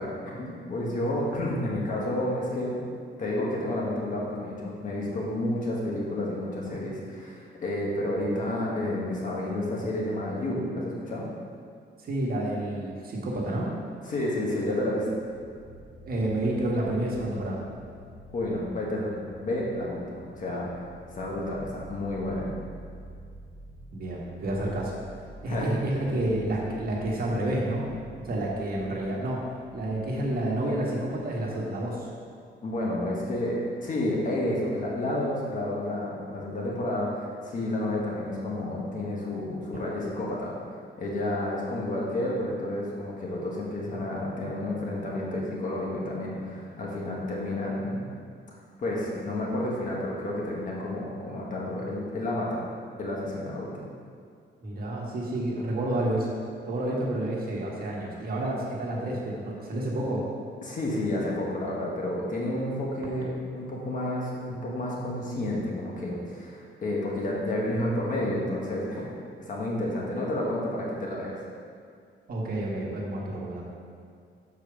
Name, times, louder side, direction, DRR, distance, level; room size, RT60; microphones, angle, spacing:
voice 1, 0.0-2.8 3.2-11.3 14.0-15.1 18.3-20.9 21.1-22.5 25.5-25.7 32.6-40.5 41.0-48.0 48.8-52.6 53.0-53.8 60.6-69.2 69.5-71.4, left 1 dB, 45° left, -4 dB, 1.6 m, -30 dB
voice 2, 12.0-13.7 16.0-17.6 23.9-24.9 25.4-27.9 28.2-29.4 29.7-32.1 54.6-56.3 56.7-60.2 72.3-73.6, right 1 dB, 50° right, -3 dB, 1.5 m, -29 dB
sound 1, 15.0-32.0, right 1 dB, 15° left, 1.5 m, -48 dB
7.2 x 4.7 x 6.2 m, 2.3 s
cardioid pair, 155°, 19 cm